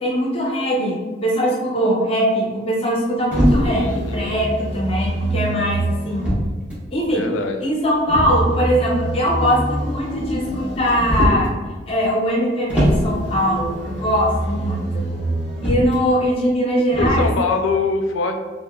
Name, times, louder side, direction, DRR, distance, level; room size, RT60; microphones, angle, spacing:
voice 1, 0.0-6.3 6.9-7.3 7.6-11.5 11.9-15.1 15.6-17.3, equal, 30° left, -3 dB, 0.5 m, -21 dB
Motor vehicle (road), 3.3-6.8 8.1-11.5 12.7-16.0 16.9-17.3, right 1 dB, 10° right, 0.8 m, -23 dB
voice 2, 3.8-4.3 7.1-7.6 17.0-18.4, left 4 dB, 80° left, 5 dB, 0.3 m, -23 dB
3.2 x 2.1 x 2.2 m, 1.3 s
head